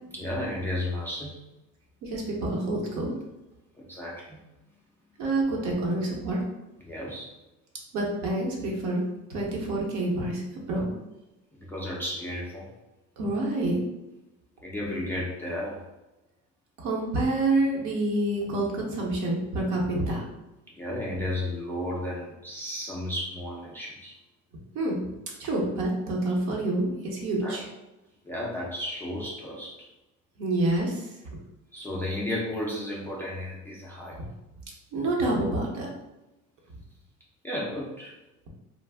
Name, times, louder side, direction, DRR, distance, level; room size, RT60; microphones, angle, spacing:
voice 1, 0.1-1.4 3.8-4.4 6.8-7.3 11.5-12.7 14.6-15.8 20.7-24.1 27.4-27.6 28.2-29.9 31.7-34.2 37.4-38.1, left 1 dB, 5° left, -5 dB, 0.3 m, -33 dB
voice 2, 2.0-3.1 5.2-6.4 7.9-9.0 9.3-10.9 13.2-13.8 16.8-20.2 24.7-25.0 25.4-27.6 30.4-31.1 34.2-34.3 34.9-35.9, right 2 dB, 65° right, -2 dB, 0.9 m, -27 dB
2.4 x 2.0 x 3.4 m, 0.98 s
cardioid pair, 140°, 31 cm